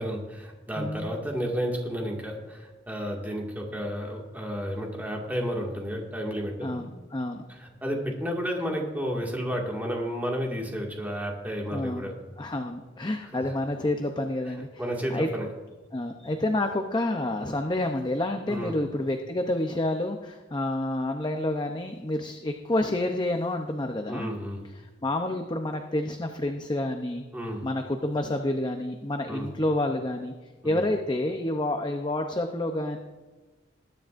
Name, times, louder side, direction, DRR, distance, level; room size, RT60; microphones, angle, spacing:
voice 1, 0.0-6.8 7.5-12.2 13.3-13.5 14.8-15.5 18.5-18.8 24.1-24.6 27.3-27.6 29.3-29.5 30.6-30.8, equal, 10° right, -1 dB, 2.1 m, -32 dB
voice 2, 0.8-1.1 6.6-7.4 11.7-12.1 12.4-14.7 15.1-15.3 15.9-24.3 24.8-27.2 27.6-30.3 30.6-33.0, left 1 dB, 25° left, 4 dB, 0.7 m, -29 dB
20.5 x 9.9 x 2.6 m, 1.3 s
head